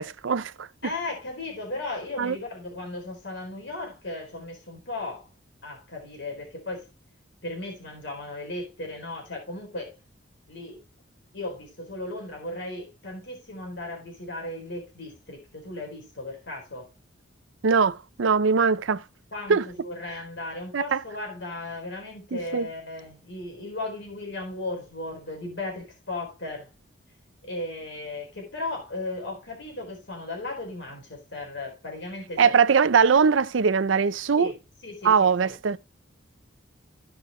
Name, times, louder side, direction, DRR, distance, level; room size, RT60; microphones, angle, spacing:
voice 1, 0.0-0.7 2.2-2.4 17.6-19.0 19.5-19.6 20.7-21.0 22.5-22.7 32.4-34.5 35.0-35.8, right 6 dB, 80° right, 0.5 m, -21 dB
voice 2, 0.8-5.3 5.6-6.9 7.4-10.0 10.5-10.8 11.3-16.9 19.3-26.7 27.4-32.5 34.4-35.5, left 2 dB, 65° left, 4.3 m, -36 dB
16.0 x 5.6 x 3.1 m
head